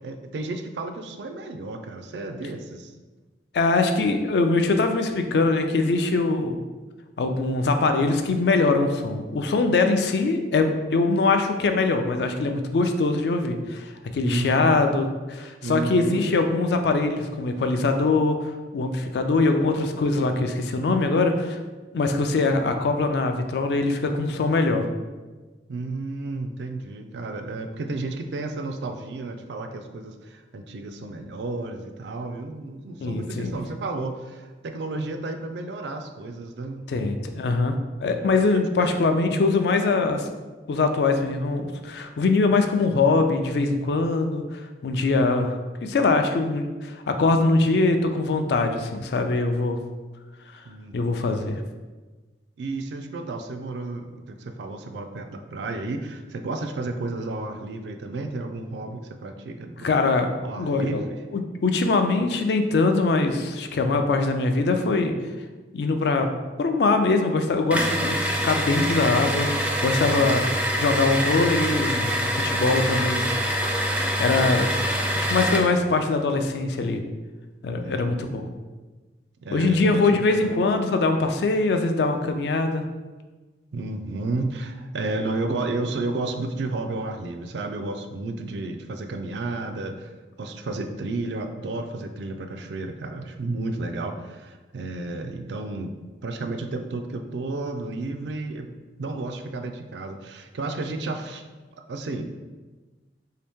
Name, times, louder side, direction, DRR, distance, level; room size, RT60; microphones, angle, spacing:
voice 1, 0.0-2.9 14.2-14.8 15.6-16.3 25.7-36.8 38.5-39.0 39.3-39.4 50.6-51.3 52.6-59.9 60.4-61.2 70.1-70.5 77.8-78.4 79.4-80.6 83.7-90.1 90.4-95.9 96.2-98.7 99.0-101.4 101.9-102.2, right 2 dB, 75° right, 6 dB, 0.4 m, -32 dB
voice 2, 3.5-6.6 7.2-21.6 21.9-24.9 33.0-33.5 36.9-37.7 38.0-40.3 40.7-49.8 50.9-51.6 59.8-60.3 60.6-61.0 61.3-65.1 65.7-66.3 66.6-70.4 70.8-73.2 73.9-74.7 75.1-77.0 77.6-78.5 79.5-82.8, left 3 dB, 65° left, 6 dB, 0.4 m, -22 dB
sound 1, 67.7-75.7, equal, 5° right, 0.4 m, -25 dB
3.4 x 2.8 x 3.5 m, 1.3 s
head